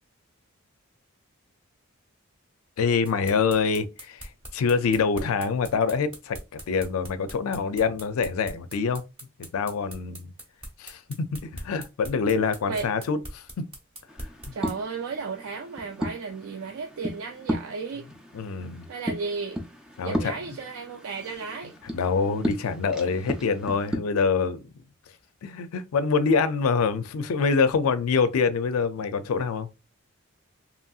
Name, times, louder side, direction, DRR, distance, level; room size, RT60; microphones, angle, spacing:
voice 1, 2.8-6.4 6.7-9.0 9.5-10.3 10.8-13.7 18.3-18.9 20.0-20.3 21.9-24.6 25.4-29.7, left 5 dB, 75° left, 0.4 m, -25 dB
sound 1, 3.1-14.8, equal, 25° right, 0.7 m, -41 dB
sound 2, 14.1-24.0, equal, 5° right, 0.3 m, -35 dB
voice 2, 14.5-18.1 18.9-19.6 20.0-21.7, right 4 dB, 75° right, 0.4 m, -34 dB
2.9 x 2.6 x 2.3 m
head